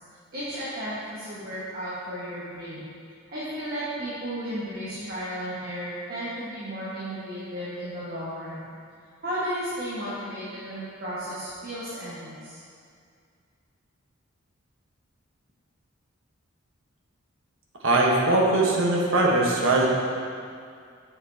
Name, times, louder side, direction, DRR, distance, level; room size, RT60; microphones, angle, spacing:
voice 1, 0.3-2.8 3.3-8.6 9.2-12.6, equal, 45° right, -11 dB, 1.4 m, -34 dB
voice 2, 17.8-19.9, right 2 dB, 70° right, -2 dB, 1.1 m, -21 dB
7.3 x 7.0 x 2.8 m, 2.3 s
head